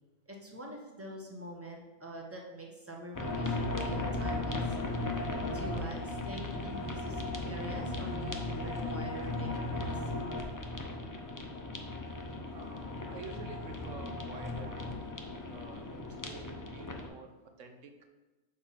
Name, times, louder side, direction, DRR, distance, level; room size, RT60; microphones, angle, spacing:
voice 1, 0.3-4.8 5.5-9.8, equal, 10° right, 0 dB, 1.0 m, -45 dB
sound 1, 3.1-17.1, left 2 dB, 25° left, 0.4 m, -36 dB
voice 2, 12.4-15.8 16.2-18.1, right 4 dB, 75° right, 6 dB, 1.2 m, -49 dB
6.8 x 4.1 x 5.7 m, 1.1 s
omnidirectional pair, 1.3 m